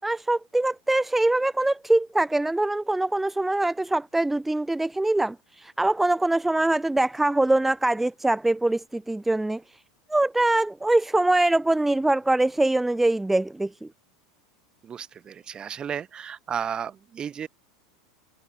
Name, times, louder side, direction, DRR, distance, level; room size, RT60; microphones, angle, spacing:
voice 1, 0.0-9.6 10.1-13.9, right 2 dB, 5° right, 4.4 m, -23 dB
voice 2, 14.8-17.5, right 8 dB, 30° right, 5.9 m, -33 dB
figure-of-eight pair, 85°, 3 cm